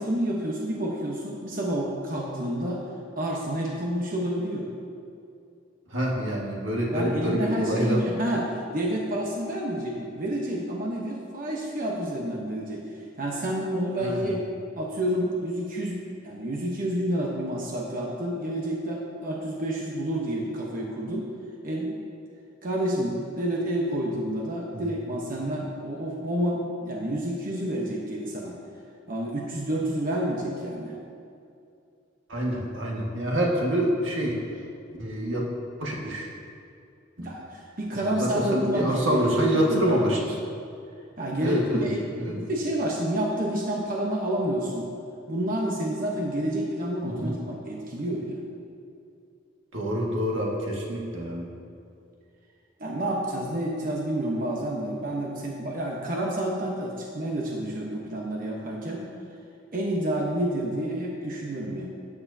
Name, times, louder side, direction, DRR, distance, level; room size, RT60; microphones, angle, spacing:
voice 1, 0.0-2.8 3.2-4.7 6.9-8.4 8.7-12.8 13.2-14.4 14.8-21.3 21.6-22.0 22.6-28.6 29.1-30.9 37.2-40.0 41.2-44.9 45.3-48.4 52.8-59.0 59.7-61.9, right 1 dB, 45° right, -2 dB, 1.1 m, -29 dB
voice 2, 5.9-8.1 14.0-14.3 24.7-24.9 32.3-34.4 35.0-35.4 35.8-36.3 37.2-37.3 37.9-40.4 41.4-41.9 42.2-42.3 47.0-47.4 49.7-51.5, equal, 80° right, -3 dB, 1.8 m, -26 dB
13.0 x 9.4 x 2.8 m, 2.5 s
head